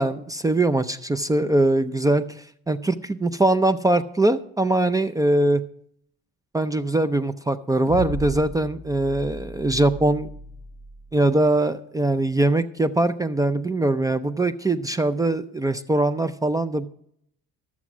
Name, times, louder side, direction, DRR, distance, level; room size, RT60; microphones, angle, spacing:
voice 1, 0.0-5.6 6.5-10.3 11.1-16.9, right 2 dB, 10° right, 12 dB, 0.5 m, -22 dB
sound 1, 7.9-11.3, equal, 30° right, 1.7 m, -36 dB
14.5 x 7.2 x 6.0 m, 0.68 s
cardioid pair, 110°, 31 cm